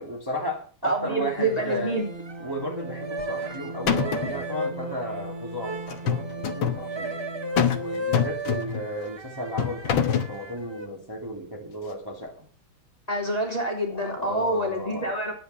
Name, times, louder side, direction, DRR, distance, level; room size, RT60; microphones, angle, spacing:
voice 1, 0.0-2.0 2.4-7.2 7.7-12.5 13.9-15.2, equal, 10° right, -1 dB, 2.8 m, -34 dB
voice 2, 0.8-2.1 13.1-15.3, right 1 dB, 15° left, 0 dB, 3.3 m, -27 dB
sound 1, 1.3-2.5 2.8-10.9, right 1 dB, 30° right, 0.5 m, -36 dB
sound 2, 1.3-8.2, right 2 dB, 70° right, 3.1 m, -40 dB
sound 3, 3.2-3.6 3.9-4.4 5.9-6.8 7.6-7.9 8.1-8.9 9.6-10.3, left 7 dB, 70° left, 1.9 m, -25 dB
13.0 x 10.0 x 5.7 m, 0.40 s
omnidirectional pair, 2.3 m